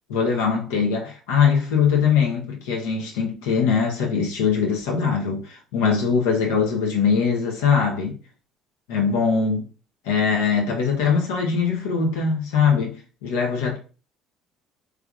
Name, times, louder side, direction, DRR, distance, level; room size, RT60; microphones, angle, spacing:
voice 1, 0.1-8.2 8.9-9.6 10.0-13.0 13.2-13.8, left 6 dB, 75° left, 0.9 m, -21 dB
3.5 x 3.3 x 2.4 m
hypercardioid pair, 55°, 0 cm